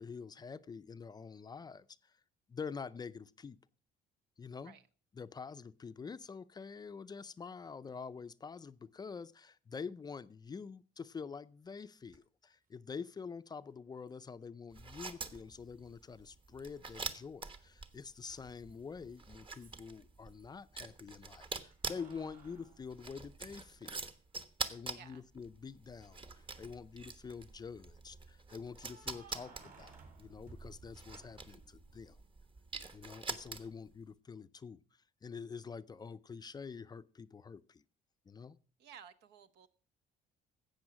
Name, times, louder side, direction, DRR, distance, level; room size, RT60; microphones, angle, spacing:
voice 1, 0.0-2.2 2.5-3.6 4.4-4.7 5.1-23.9 24.7-32.2 32.9-34.8 35.2-37.8 38.3-38.6, left 5 dB, 25° left, 0.5 m, -47 dB
Keys jangling, 12.1-12.2 14.1-14.2 16.4-17.0 17.3-20.4 21.7-23.8 24.3-24.4 26.2-26.7 28.7-31.7, right 4 dB, 55° right, 3.9 m, -59 dB
sound 1, 14.7-33.9, right 4 dB, 30° right, 1.2 m, -46 dB
voice 2, 24.9-25.3 38.8-39.7, right 7 dB, 75° right, 1.1 m, -55 dB
12.5 x 8.1 x 5.9 m
cardioid pair, 110°, 17 cm